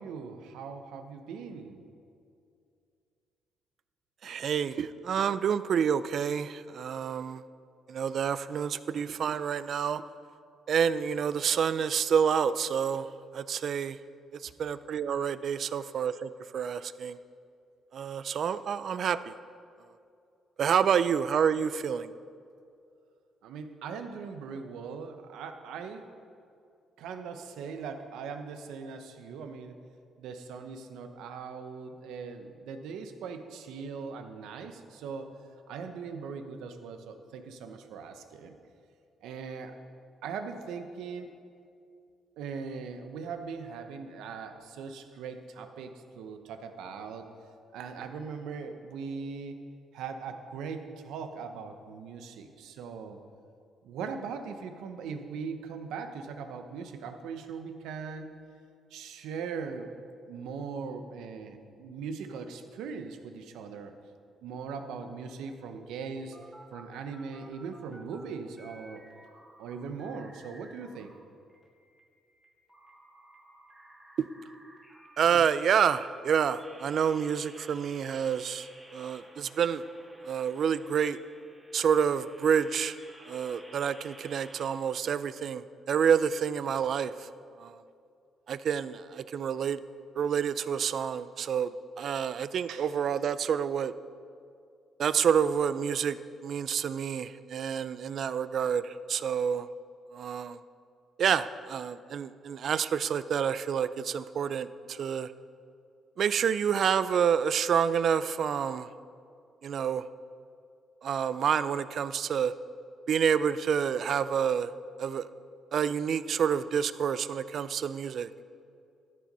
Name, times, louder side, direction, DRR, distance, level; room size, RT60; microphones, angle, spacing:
voice 1, 0.0-1.8 23.4-26.0 27.0-29.7 30.2-35.3 35.7-38.6 39.2-39.7 40.2-41.3 42.4-47.3 47.7-49.6 49.9-53.2 53.8-58.3 58.9-59.9 60.2-63.9 64.4-66.4 66.7-69.0 69.6-71.1 92.7-92.9, right 5 dB, 85° right, 7 dB, 0.9 m, -40 dB
voice 2, 4.2-7.4 7.9-10.0 10.7-13.1 13.3-14.0 14.6-17.2 17.9-19.3 20.6-22.1 75.2-79.8 80.3-81.2 81.7-82.9 83.3-87.3 87.6-87.7 88.5-89.8 90.2-93.9 95.0-96.2 96.4-99.7 100.1-100.6 101.2-105.3 106.2-108.9 109.6-110.0 111.0-112.5 113.1-114.7 115.0-115.3 115.7-118.3, right 7 dB, 60° right, 15 dB, 0.4 m, -28 dB
sound 1, 65.6-68.2 68.5-71.1 71.5-84.7, right 1 dB, 10° right, 2.1 m, -54 dB
13.5 x 7.5 x 5.4 m, 2.4 s
cardioid pair, 90°, 0 cm